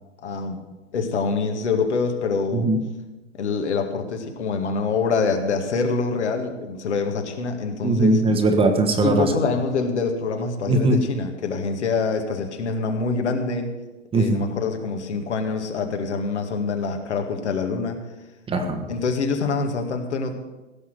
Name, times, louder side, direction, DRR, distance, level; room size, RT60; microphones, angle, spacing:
voice 1, 0.2-0.6 0.9-2.7 3.3-8.2 9.0-13.7 14.1-18.0 18.9-20.3, left 4 dB, 70° left, 5 dB, 2.1 m, -25 dB
voice 2, 7.8-9.3 10.7-11.0 14.1-14.4 18.5-18.8, right 2 dB, 15° right, 5 dB, 1.2 m, -19 dB
16.5 x 6.2 x 7.8 m, 1.1 s
hypercardioid pair, 115°, 36 cm